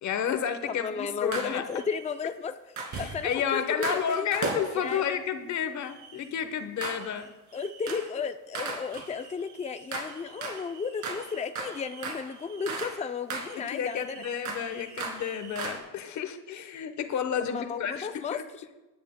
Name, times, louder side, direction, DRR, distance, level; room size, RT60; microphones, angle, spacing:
voice 1, 0.0-1.6 2.9-7.3 13.5-18.4, left 8 dB, 70° left, 8 dB, 1.0 m, -31 dB
voice 2, 0.8-2.5 3.0-4.3 4.7-5.0 7.5-14.2 17.5-18.4, left 5 dB, 25° left, 9 dB, 0.4 m, -34 dB
sound 1, 1.3-2.2 2.8-5.1 5.8-6.3 6.8-7.3 7.5-8.1 8.5-13.0 13.3-15.8, right 4 dB, 75° right, 2.2 m, -37 dB
18.5 x 10.0 x 2.2 m, 1.1 s
cardioid pair, 90°, 30 cm